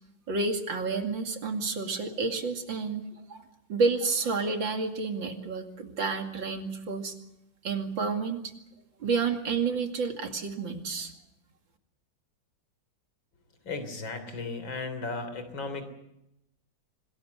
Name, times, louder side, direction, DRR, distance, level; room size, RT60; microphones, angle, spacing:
voice 1, 0.3-3.4 3.7-7.1 7.6-8.4 9.0-11.1, right 4 dB, 85° right, 5 dB, 3.1 m, -30 dB
voice 2, 13.6-15.9, left 3 dB, 85° left, 9 dB, 4.2 m, -35 dB
26.0 x 20.0 x 8.1 m, 0.84 s
omnidirectional pair, 2.0 m